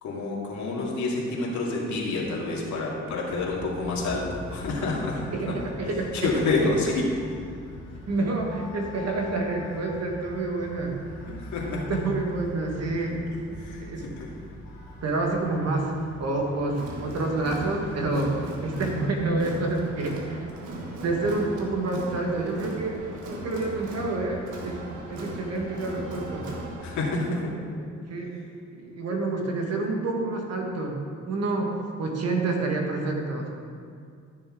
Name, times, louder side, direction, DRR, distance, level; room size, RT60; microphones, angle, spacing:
voice 1, 0.0-5.2 5.5-5.6 6.1-7.1 11.3-11.9 13.0-14.3 26.8-27.5, left 3 dB, 70° left, -4 dB, 2.4 m, -28 dB
sound 1, 3.1-18.1, left 2 dB, 85° left, 2.2 m, -43 dB
voice 2, 5.3-6.1 6.6-6.7 8.1-11.0 11.9-13.2 13.8-14.0 15.0-15.9 16.2-20.4 20.7-23.0 23.3-26.5 27.1-27.5 28.1-28.3 28.7-31.0 31.3-33.5, right 2 dB, 55° right, 1 dB, 1.7 m, -28 dB
Crowd, 16.7-27.0, right 1 dB, 80° right, 1.6 m, -38 dB
13.0 x 6.8 x 3.8 m, 2.3 s
cardioid pair, 90°, 30 cm